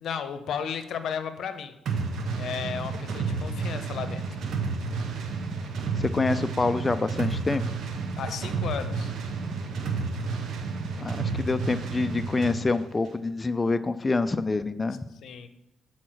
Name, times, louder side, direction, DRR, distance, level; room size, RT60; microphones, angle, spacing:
voice 1, 0.0-1.7 2.3-4.4 8.1-9.1 15.2-15.5, left 7 dB, 70° left, 10 dB, 0.7 m, -34 dB
sound 1, 1.9-12.6, right 4 dB, 70° right, 1.0 m, -31 dB
voice 2, 6.0-7.6 11.0-15.0, left 3 dB, 20° left, 11 dB, 0.3 m, -26 dB
7.7 x 4.3 x 6.2 m, 0.87 s
cardioid pair, 105°, 0 cm